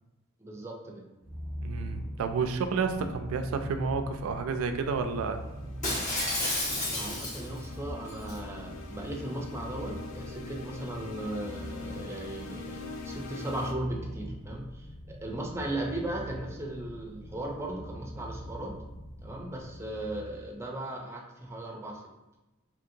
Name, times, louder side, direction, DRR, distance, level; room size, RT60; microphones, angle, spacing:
voice 1, 0.4-1.0 6.6-18.8 19.2-22.0, right 1 dB, 15° right, 0 dB, 0.4 m, -37 dB
Purr, 1.2-20.5, equal, 10° left, 1.2 m, -43 dB
voice 2, 1.6-5.4, right 5 dB, 80° right, 8 dB, 0.3 m, -30 dB
sound 1, 4.6-13.7, left 4 dB, 65° left, 0.3 m, -44 dB
Shatter, 5.8-7.6 8.1-8.4, left 1 dB, 35° left, 0.9 m, -31 dB
2.8 x 2.7 x 2.6 m, 1.0 s
head